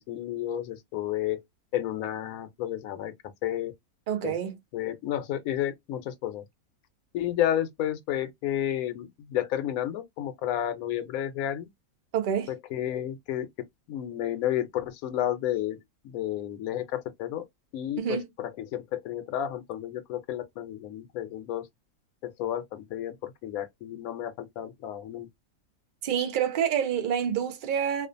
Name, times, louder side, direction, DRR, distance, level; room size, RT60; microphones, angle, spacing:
voice 1, 0.0-1.4 1.7-3.2 3.4-3.7 4.2-4.4 4.7-6.4 7.1-11.7 12.5-13.5 13.9-17.4 17.7-21.7 22.2-25.3, left 11 dB, 75° left, 1.0 m, -31 dB
voice 2, 4.1-4.6 12.1-12.5 18.0-18.3 26.0-28.1, right 8 dB, 55° right, 0.6 m, -27 dB
2.4 x 2.3 x 2.5 m
omnidirectional pair, 1.5 m